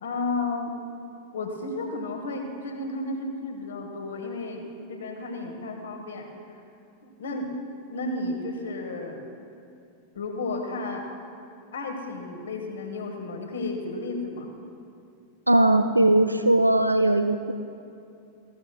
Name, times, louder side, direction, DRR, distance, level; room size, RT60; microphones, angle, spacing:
voice 1, 0.0-0.8 1.3-6.6 7.0-7.5 7.9-9.2 10.1-11.1 11.7-14.5, left 2 dB, 65° left, 4 dB, 1.3 m, -33 dB
voice 2, 15.5-17.5, right 1 dB, 85° right, 9 dB, 0.3 m, -19 dB
15.5 x 12.0 x 2.2 m, 2.6 s
figure-of-eight pair, 90°, 0 cm